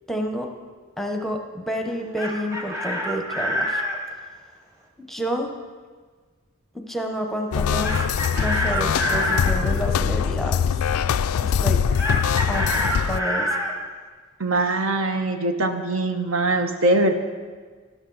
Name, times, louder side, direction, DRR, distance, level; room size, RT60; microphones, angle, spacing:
voice 1, 0.1-0.5 1.0-3.8 5.1-5.5 6.7-7.9 8.4-10.7 11.4-11.8 12.5-13.5, equal, ahead, 3 dB, 0.8 m, -29 dB
Chicken rooster, 1.9-4.0 7.8-9.6 12.0-13.7, left 1 dB, 15° right, 1.3 m, -26 dB
sound 1, 7.5-13.2, left 7 dB, 90° left, 0.3 m, -23 dB
voice 2, 14.4-17.1, right 2 dB, 70° right, 7 dB, 0.9 m, -22 dB
12.5 x 11.5 x 4.0 m, 1.5 s
head